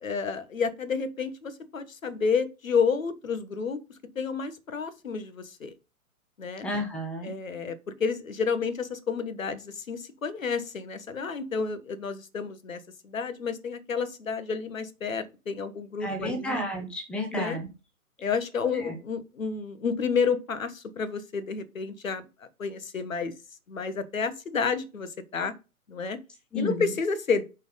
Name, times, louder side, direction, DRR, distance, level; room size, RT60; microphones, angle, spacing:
voice 1, 0.0-3.8 4.1-5.7 6.4-6.7 7.2-16.7 17.3-17.6 18.2-22.2 22.6-23.3 23.7-25.5 25.9-26.2 26.5-27.4, left 5 dB, 65° left, 1.4 m, -30 dB
voice 2, 6.6-7.3 16.0-17.7 18.7-18.9 26.5-26.9, left 1 dB, ahead, 0.8 m, -32 dB
8.1 x 4.5 x 5.0 m
figure-of-eight pair, 125°, 43 cm